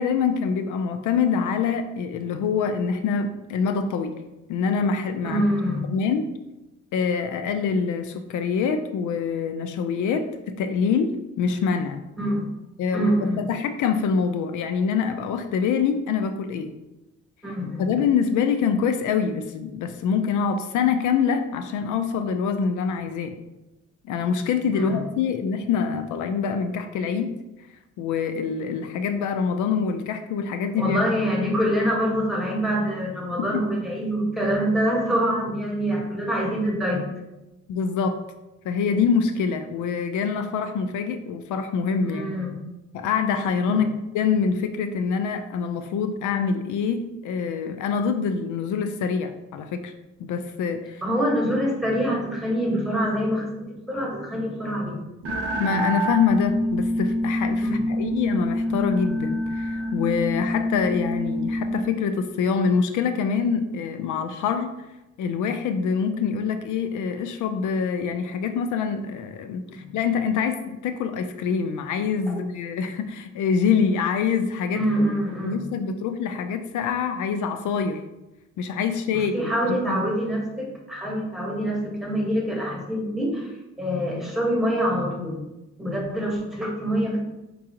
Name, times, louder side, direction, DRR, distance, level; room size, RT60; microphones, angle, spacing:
voice 1, 0.0-4.1 4.5-5.4 5.9-6.3 6.9-12.0 12.8-16.7 17.8-23.3 24.1-27.3 28.0-31.0 33.4-33.6 37.7-38.2 38.6-42.4 42.9-43.9 44.1-49.9 50.2-51.0 55.6-64.7 65.2-74.8 75.4-78.0 78.6-80.1, left 6 dB, 80° left, 8 dB, 0.5 m, -25 dB
voice 2, 5.2-6.0 12.2-12.5 12.9-13.5 17.4-17.9 24.8-25.0 30.8-37.0 42.0-42.6 43.7-43.8 51.0-55.2 57.6-57.8 69.7-69.9 72.3-72.4 74.7-75.6 79.1-85.4 85.8-87.2, equal, ahead, -2 dB, 1.3 m, -25 dB
sound 1, 55.2-61.9, equal, 50° right, 0.8 m, -26 dB
4.7 x 3.9 x 2.9 m, 1.0 s
cardioid pair, 90°, 30 cm